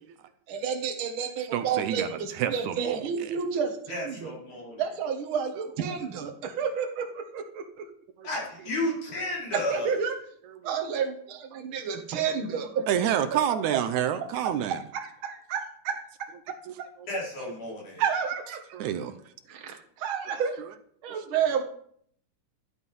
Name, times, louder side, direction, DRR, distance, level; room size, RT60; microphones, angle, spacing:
voice 1, 0.5-4.3 4.8-7.9 9.5-10.2 10.6-13.2 13.7-13.8 14.7-16.9 18.0-18.6 19.5-20.6 21.0-21.6, right 7 dB, 50° right, 4 dB, 1.9 m, -31 dB
voice 2, 1.5-3.0 8.2-8.3 10.6-10.7 12.9-14.8 18.7-19.2 20.3-20.4, right 10 dB, 75° right, 10 dB, 1.9 m, -28 dB
voice 3, 3.9-4.8 8.2-9.9 17.1-18.0, left 1 dB, 65° left, -4 dB, 6.4 m, -32 dB
12.5 x 11.0 x 5.4 m, 0.65 s
omnidirectional pair, 3.8 m